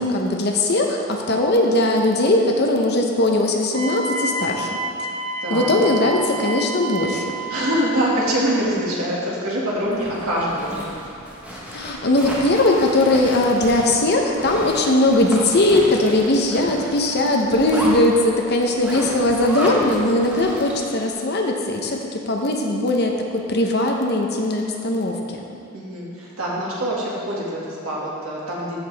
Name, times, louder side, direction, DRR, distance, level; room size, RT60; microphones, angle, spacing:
voice 1, 0.0-4.7 5.5-7.3 11.7-25.4, left 1 dB, 50° left, 2 dB, 0.8 m, -19 dB
Wind instrument woodwind instrument, 3.7-7.9, right 2 dB, 65° right, 1.8 m, -29 dB
voice 2, 5.4-6.0 7.4-10.9 16.5-17.9 25.7-28.8, equal, 85° right, -5 dB, 2.1 m, -25 dB
Zipper (clothing), 9.8-21.0, equal, 5° right, 1.1 m, -32 dB
13.5 x 5.5 x 3.4 m, 2.8 s
head